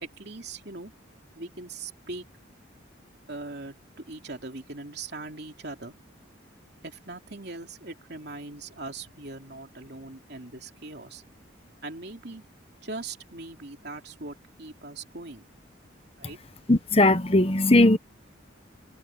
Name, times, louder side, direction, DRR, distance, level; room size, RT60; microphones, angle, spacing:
voice 1, 0.0-0.9 1.3-2.2 3.3-3.7 4.1-5.9 6.8-11.2 11.8-12.4 12.8-15.5 16.2-16.4, right 3 dB, 55° right, 3.2 m, -40 dB
voice 2, 16.7-18.0, left 2 dB, 30° left, 1.1 m, -19 dB
head